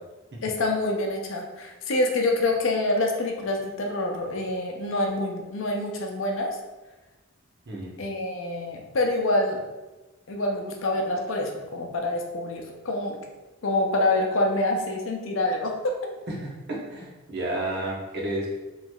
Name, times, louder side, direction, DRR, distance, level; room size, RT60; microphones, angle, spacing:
voice 1, 0.4-6.6 8.0-9.6 10.3-13.2 13.6-16.0, left 2 dB, 65° left, 2 dB, 0.6 m, -26 dB
voice 2, 7.7-8.0 16.4-18.5, right 1 dB, 55° right, -3 dB, 1.0 m, -31 dB
4.5 x 3.1 x 2.3 m, 1.1 s
head